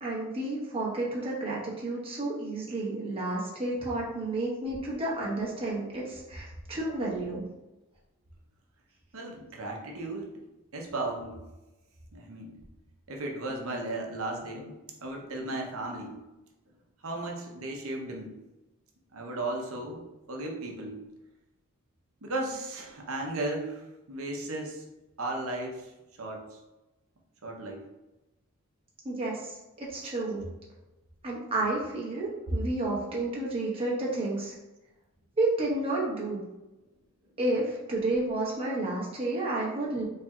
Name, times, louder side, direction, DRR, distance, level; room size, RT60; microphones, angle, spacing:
voice 1, 0.0-7.4 29.0-30.4 31.2-34.5 35.4-36.4 37.4-40.0, right 2 dB, 25° right, -5 dB, 1.1 m, -31 dB
voice 2, 9.1-10.3 10.7-11.4 12.1-12.5 13.1-14.7 15.0-16.2 17.0-18.3 19.1-21.0 22.2-24.8 25.2-25.9 26.2-26.6 27.4-27.8, right 2 dB, 70° right, 1 dB, 0.8 m, -35 dB
4.3 x 3.3 x 2.3 m, 1.0 s
head